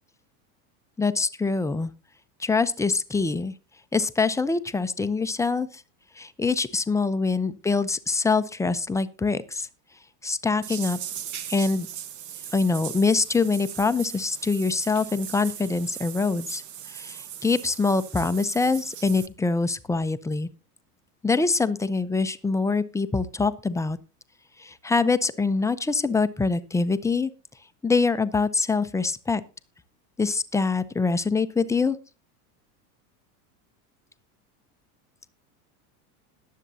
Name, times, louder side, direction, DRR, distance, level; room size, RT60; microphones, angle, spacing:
voice 1, 1.0-1.9 2.4-3.5 3.9-5.8 6.2-9.7 10.2-11.0 11.5-11.9 12.5-16.6 16.9-20.5 21.2-24.0 24.6-27.3 27.8-29.4 30.2-32.0, left 4 dB, 5° left, 12 dB, 0.5 m, -24 dB
sound 1, 10.6-19.3, right 10 dB, 40° right, 1.0 m, -39 dB
21.0 x 7.4 x 2.7 m, 0.31 s
hypercardioid pair, 105°, 45 cm